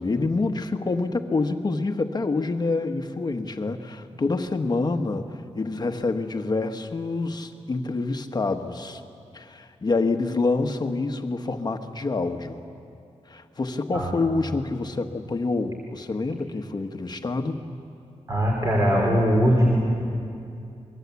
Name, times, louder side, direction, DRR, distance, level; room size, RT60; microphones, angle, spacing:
voice 1, 0.0-5.3 5.5-9.0 9.3-12.6 13.3-17.6, left 3 dB, 35° left, 6 dB, 1.3 m, -27 dB
voice 2, 18.3-19.8, equal, 30° right, -2 dB, 3.8 m, -20 dB
28.5 x 22.5 x 8.4 m, 2.6 s
wide cardioid pair, 160°, 12 cm